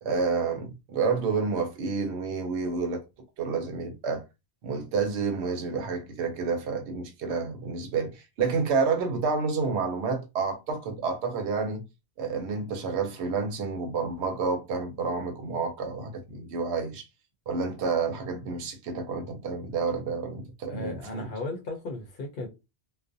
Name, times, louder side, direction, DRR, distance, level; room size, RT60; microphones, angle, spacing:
voice 1, 0.0-3.0 3.4-4.2 4.6-11.8 12.2-17.0 17.5-21.3, right 4 dB, 80° right, 0.9 m, -29 dB
voice 2, 20.7-22.5, left 2 dB, 60° left, 0.7 m, -35 dB
2.4 x 2.1 x 2.6 m
omnidirectional pair, 1.1 m